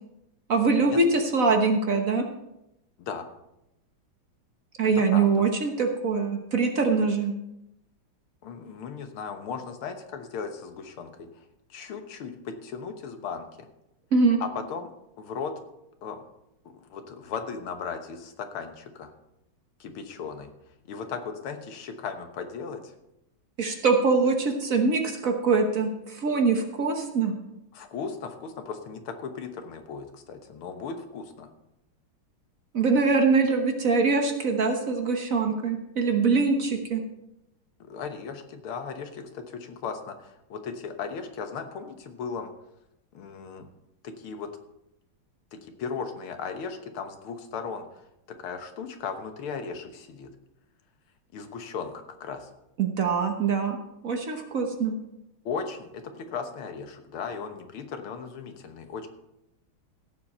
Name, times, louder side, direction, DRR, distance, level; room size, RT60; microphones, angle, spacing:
voice 1, 0.5-2.2 4.8-7.3 14.1-14.4 23.6-27.3 32.7-37.0 52.8-53.8 54.0-54.9, right 4 dB, 45° right, 4 dB, 1.3 m, -23 dB
voice 2, 5.1-5.5 8.4-11.3 11.7-13.7 14.4-14.9 15.2-15.5 16.0-16.2 16.9-19.1 19.8-20.5 20.9-22.9 27.7-31.5 36.7-36.8 37.8-42.5 43.1-43.7 44.0-44.5 45.5-48.0 48.3-50.3 51.3-52.5 55.5-59.1, left 5 dB, 90° left, 6 dB, 2.1 m, -36 dB
16.5 x 7.4 x 4.4 m, 0.87 s
omnidirectional pair, 2.3 m